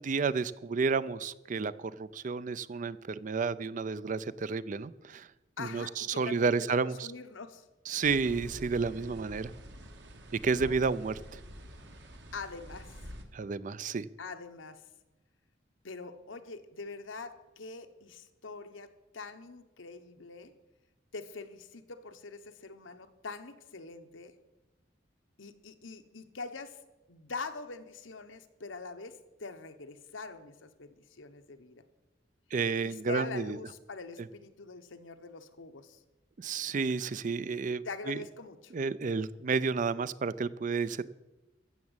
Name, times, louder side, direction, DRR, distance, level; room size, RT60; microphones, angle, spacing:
voice 1, 0.0-5.3 5.6-7.1 7.9-9.5 10.4-11.4 13.3-14.1 32.5-33.6 36.4-38.2 38.7-41.1, right 4 dB, 40° right, 17 dB, 0.4 m, -31 dB
voice 2, 5.6-7.6 10.4-10.8 12.3-13.0 14.2-14.8 15.8-20.5 21.1-24.3 25.4-26.8 27.1-31.8 32.9-36.0 37.8-38.7, left 4 dB, 90° left, 8 dB, 1.1 m, -44 dB
sound 1, 8.0-13.2, equal, 65° right, 1.7 m, -47 dB
14.5 x 7.3 x 8.0 m, 1.1 s
head